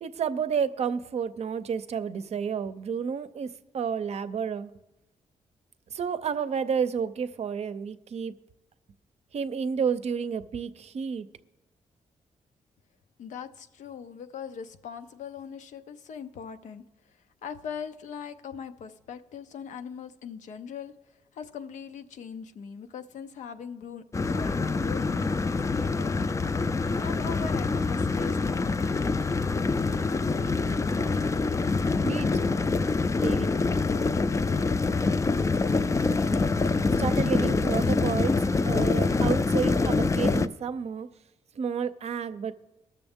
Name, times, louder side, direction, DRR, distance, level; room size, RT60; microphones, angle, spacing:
voice 1, 0.0-4.7 5.9-8.3 9.3-11.3 32.0-32.3 33.2-33.5 37.0-38.4 38.6-41.1 41.5-42.5, right 6 dB, 60° right, 0.5 m, -30 dB
voice 2, 13.2-25.4 25.7-26.2 27.0-28.8, left 6 dB, 85° left, 0.6 m, -41 dB
sound 1, 24.1-40.5, left 3 dB, 25° left, 0.4 m, -25 dB
19.5 x 6.7 x 3.6 m
cardioid pair, 70°, 12 cm